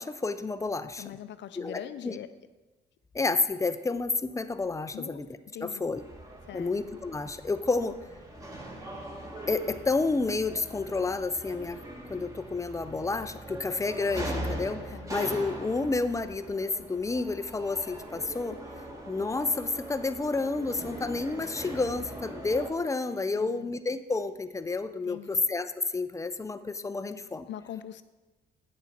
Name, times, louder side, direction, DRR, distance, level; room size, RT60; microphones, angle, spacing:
voice 1, 0.0-1.2 1.6-2.2 3.1-5.3 5.6-6.0 6.5-8.0 9.5-11.8 12.1-18.6 19.1-27.5, left 3 dB, 15° left, 11 dB, 0.5 m, -30 dB
voice 2, 1.0-2.3 4.9-5.2 5.5-5.8 6.5-6.7 14.9-15.1 23.3-23.7 25.1-25.4 27.5-28.0, left 11 dB, 65° left, 12 dB, 0.6 m, -42 dB
sound 1, 5.9-22.7, right 1 dB, 15° right, 1.6 m, -41 dB
8.7 x 6.9 x 4.4 m, 1.2 s
cardioid pair, 90°, 20 cm